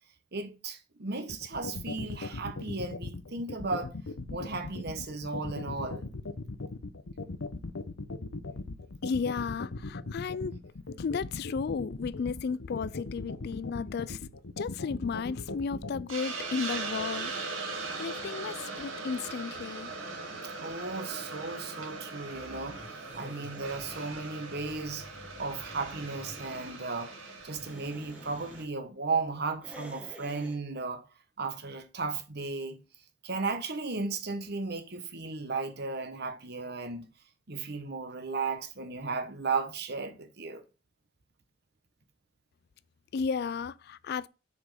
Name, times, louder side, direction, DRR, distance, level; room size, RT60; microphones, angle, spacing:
voice 1, 0.3-3.9 4.3-6.1 20.6-22.8 23.1-25.1 25.4-27.1 27.4-31.0 31.4-32.8 33.2-37.1 37.5-40.6, right 4 dB, 55° right, 1.3 m, -35 dB
sound 1, 1.3-16.0, left 3 dB, 85° left, 0.9 m, -38 dB
voice 2, 9.0-10.6 11.0-14.3 14.6-17.6 18.0-19.9 43.1-44.3, left 5 dB, 55° left, 0.3 m, -34 dB
Hiss, 16.1-28.6, right 3 dB, 90° right, 2.5 m, -40 dB
sound 2, 22.3-26.8 27.4-28.7 29.6-30.6, equal, 5° right, 1.2 m, -49 dB
6.8 x 5.2 x 5.1 m
head